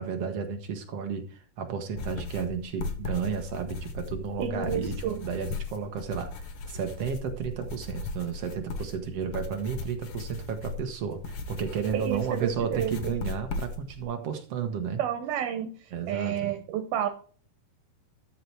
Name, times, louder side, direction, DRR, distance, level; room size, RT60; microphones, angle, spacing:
voice 1, 0.0-15.0 15.9-16.5, right 6 dB, 60° right, 6 dB, 1.7 m, -33 dB
sound 1, 2.0-14.0, left 3 dB, 55° left, 1.8 m, -37 dB
voice 2, 4.4-5.2 11.9-13.1 15.0-15.7 16.1-17.1, right 9 dB, 85° right, 6 dB, 3.2 m, -30 dB
13.0 x 5.8 x 4.6 m, 0.41 s
omnidirectional pair, 4.2 m